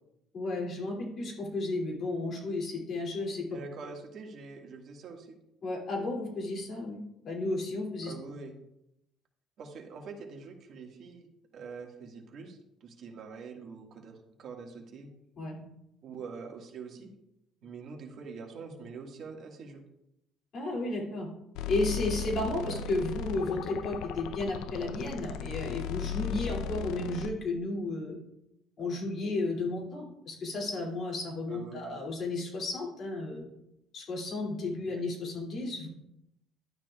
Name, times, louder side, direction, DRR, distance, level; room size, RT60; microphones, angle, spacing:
voice 1, 0.3-3.4 5.6-8.1 15.4-15.6 20.5-21.3 21.7-28.2 28.8-33.4 33.9-35.9, left 2 dB, 45° left, -2 dB, 2.5 m, -33 dB
voice 2, 3.5-5.4 8.0-8.5 9.6-11.3 11.5-15.1 16.0-17.1 17.6-19.8 22.6-22.8 31.5-32.0 34.8-34.9, right 4 dB, 50° right, 2 dB, 1.7 m, -45 dB
sound 1, 21.6-27.3, left 7 dB, 80° left, 0.5 m, -36 dB
12.0 x 8.9 x 2.3 m, 0.84 s
cardioid pair, 130°, 0 cm